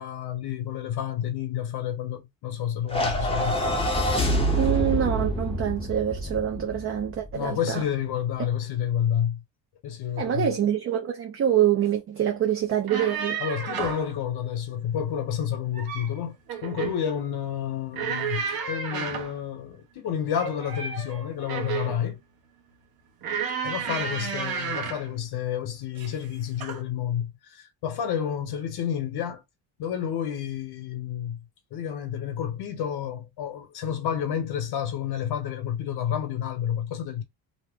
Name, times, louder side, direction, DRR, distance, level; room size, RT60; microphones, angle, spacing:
voice 1, 0.0-3.6 7.3-9.4 9.8-10.5 13.4-16.4 16.6-22.2 23.6-29.4 29.8-31.4 31.7-37.2, left 9 dB, 70° left, 1.0 m, -30 dB
sound 1, 2.9-7.3, right 1 dB, 15° left, 0.6 m, -26 dB
voice 2, 4.6-7.8 10.2-13.4, right 10 dB, 35° right, 0.5 m, -25 dB
sound 2, 12.7-14.1 15.5-16.1 16.5-17.0 17.9-19.4 20.3-22.0 23.2-25.1 26.0-26.3 26.6-26.8, right 6 dB, 60° right, 1.0 m, -32 dB
2.8 x 2.1 x 3.5 m
cardioid pair, 155°, 40 cm